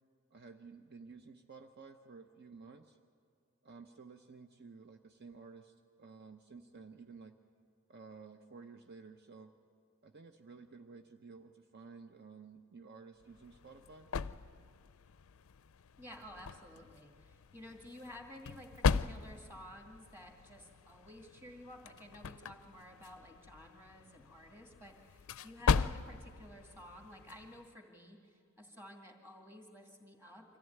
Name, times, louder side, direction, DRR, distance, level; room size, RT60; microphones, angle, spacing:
voice 1, 0.3-3.0 3.6-7.4 7.9-9.5 10.0-14.1, right 4 dB, 50° right, 6 dB, 0.8 m, -53 dB
sound 1, 13.2-27.7, left 5 dB, 85° left, 0.4 m, -39 dB
voice 2, 16.0-30.6, left 1 dB, 10° right, 2 dB, 2.3 m, -53 dB
24.5 x 14.5 x 9.3 m, 2.2 s
head